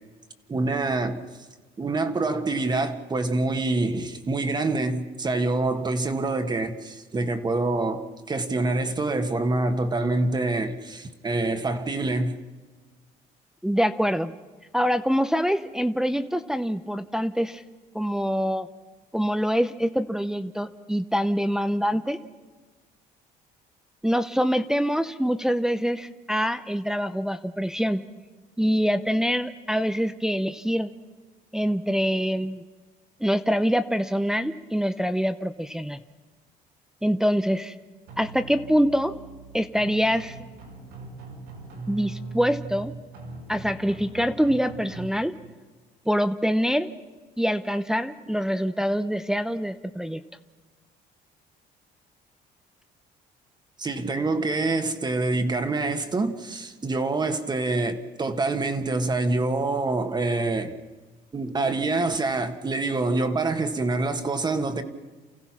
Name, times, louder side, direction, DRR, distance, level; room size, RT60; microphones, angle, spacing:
voice 1, 0.5-1.2 1.8-12.3 53.8-60.8 61.3-64.8, right 2 dB, 25° right, 1.5 m, -26 dB
voice 2, 13.6-14.3 14.7-17.6 17.9-18.7 19.1-22.2 24.0-28.0 28.6-30.9 31.5-32.6 33.2-36.0 37.0-37.8 38.2-39.1 39.5-40.4 41.9-42.9 43.5-45.3 46.1-46.9 47.4-50.2, equal, 5° right, 0.7 m, -25 dB
sound 1, 38.1-45.1, right 4 dB, 90° right, 6.1 m, -40 dB
29.0 x 15.5 x 6.0 m
cardioid pair, 110°, 17 cm